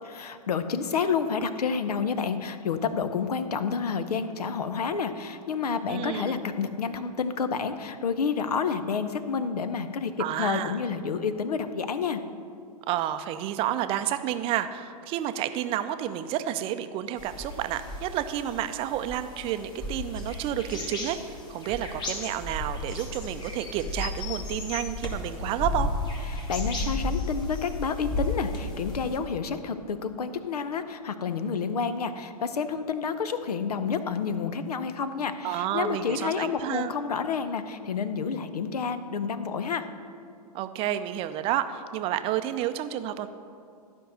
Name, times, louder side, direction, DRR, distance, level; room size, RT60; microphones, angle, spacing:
voice 1, 0.1-10.1 10.4-12.2 26.3-39.9, left 6 dB, 70° left, 11 dB, 0.8 m, -29 dB
voice 2, 5.9-6.4 10.2-10.8 12.9-25.9 35.4-36.9 40.5-43.3, right 11 dB, 30° right, 11 dB, 0.5 m, -30 dB
sound 1, 17.2-29.2, left 2 dB, 20° left, 1.5 m, -34 dB
12.5 x 5.4 x 6.7 m, 2.4 s
figure-of-eight pair, 110°, 20 cm